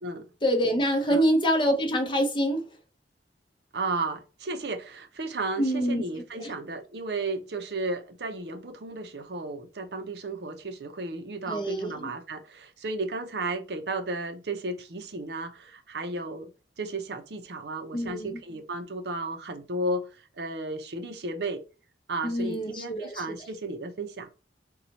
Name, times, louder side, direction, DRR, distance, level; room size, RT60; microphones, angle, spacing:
voice 1, 0.4-2.6 5.6-6.0 6.4-6.5 11.5-12.1 17.9-18.4 22.2-23.2, equal, 30° left, 0.8 m, -26 dB
voice 2, 3.7-16.5 16.8-20.1 20.4-21.6 22.1-24.3, right 2 dB, 65° right, 0.6 m, -34 dB
4.1 x 2.3 x 2.8 m
head